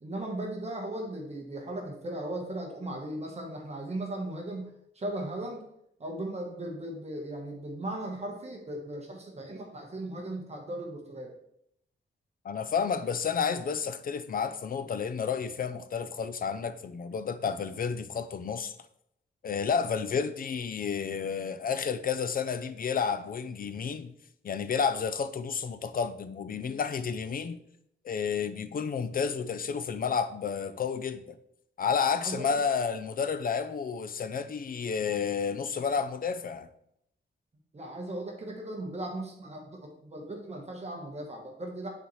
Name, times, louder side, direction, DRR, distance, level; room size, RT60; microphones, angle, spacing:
voice 1, 0.0-5.6 6.0-11.3 32.2-32.6 37.7-41.9, right 1 dB, 30° right, 1.2 m, -37 dB
voice 2, 12.4-18.8 19.4-24.1 24.4-27.6 28.0-31.4 31.8-36.7, left 6 dB, 45° left, 0.5 m, -31 dB
9.2 x 4.2 x 3.1 m
wide cardioid pair, 150°, 20 cm